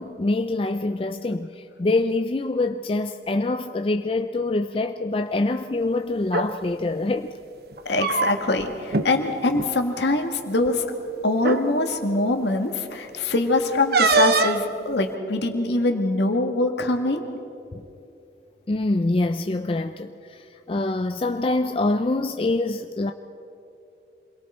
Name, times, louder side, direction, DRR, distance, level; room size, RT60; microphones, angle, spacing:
voice 1, 0.0-7.3 17.7-17.8 18.7-23.1, left 2 dB, 30° left, 0.4 m, -25 dB
sound 1, 6.2-6.5 7.7-8.6 8.9-9.1 9.5-9.7 10.7-10.8 11.4-11.6 13.9-14.6, right 4 dB, 55° right, 1.0 m, -22 dB
voice 2, 7.9-10.8 11.2-17.2, left 2 dB, 70° left, 1.9 m, -23 dB
27.5 x 22.0 x 4.3 m
head